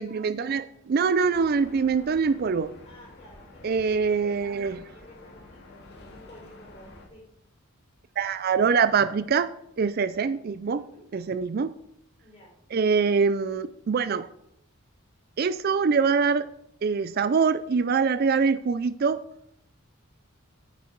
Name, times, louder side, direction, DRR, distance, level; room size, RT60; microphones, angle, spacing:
voice 1, 0.0-2.7 3.6-4.8 8.2-9.5 9.8-10.8 11.1-11.7 12.7-14.3 15.4-16.5 16.8-19.2, right 5 dB, 45° right, 14 dB, 0.4 m, -24 dB
sound 1, 1.2-7.1, left 2 dB, 50° left, 1.9 m, -49 dB
voice 2, 2.8-7.3 10.7-11.0 12.2-12.5, equal, 25° left, -3 dB, 4.8 m, -51 dB
9.5 x 8.2 x 4.6 m, 0.74 s
head